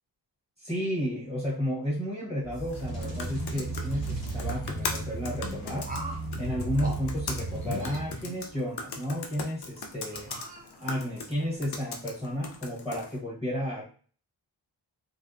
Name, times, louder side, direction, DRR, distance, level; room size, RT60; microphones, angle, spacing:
voice 1, 0.6-5.9 6.4-10.4 10.8-13.8, equal, 10° left, -8 dB, 0.9 m, -32 dB
sound 1, 2.4-8.4, right 3 dB, 40° left, 1.2 m, -35 dB
sound 2, 2.6-13.2, left 4 dB, 60° left, 0.5 m, -40 dB
sound 3, 3.5-4.9 5.8-6.3 6.8-7.0 7.6-8.8 9.3-9.4 10.1-11.0, right 1 dB, 20° right, 0.5 m, -40 dB
2.6 x 2.1 x 2.3 m, 0.41 s
wide cardioid pair, 90°, 45 cm